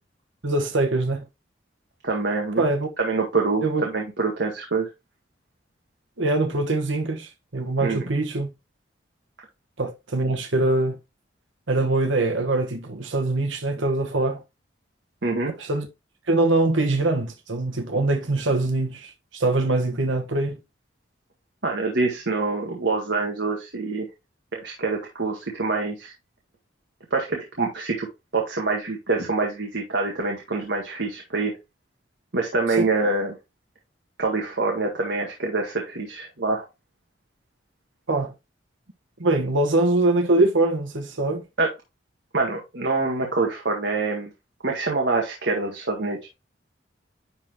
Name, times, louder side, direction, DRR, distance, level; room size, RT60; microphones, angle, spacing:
voice 1, 0.4-1.2 2.6-2.9 3.6-3.8 6.2-8.5 9.8-11.0 11.7-14.4 15.6-15.9 16.3-20.6 38.1-38.3 39.2-41.5, right 2 dB, 85° right, 1.3 m, -23 dB
voice 2, 2.0-2.6 3.0-4.9 7.8-8.0 15.2-15.5 21.6-24.1 24.5-26.1 27.1-28.1 28.3-31.5 32.3-33.4 34.2-36.6 41.6-41.7 42.3-44.3 44.6-46.2, right 3 dB, 65° right, 1.7 m, -25 dB
10.5 x 3.8 x 2.9 m
head